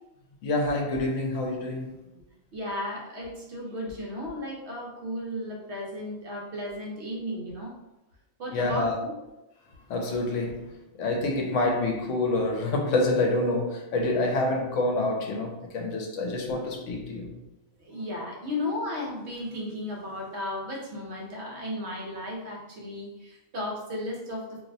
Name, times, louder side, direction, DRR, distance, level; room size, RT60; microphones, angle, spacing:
voice 1, 0.4-1.9 8.5-9.0 9.9-17.3, left 2 dB, 75° left, 2 dB, 0.9 m, -27 dB
voice 2, 2.5-7.7 8.4-9.1 17.7-24.6, left 1 dB, 60° right, -2 dB, 1.0 m, -34 dB
2.6 x 2.1 x 3.9 m, 0.97 s
omnidirectional pair, 1.4 m